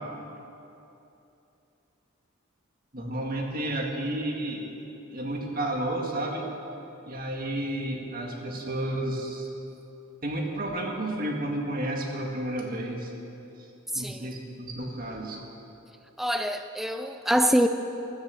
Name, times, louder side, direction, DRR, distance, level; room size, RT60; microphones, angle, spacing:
voice 1, 2.9-4.7 5.1-6.5 7.0-9.5 10.2-13.1 13.9-15.4, right 1 dB, 45° right, 1 dB, 1.8 m, -31 dB
voice 2, 13.9-14.3 16.2-17.7, equal, ahead, 7 dB, 0.4 m, -25 dB
14.0 x 11.5 x 7.6 m, 2.9 s
head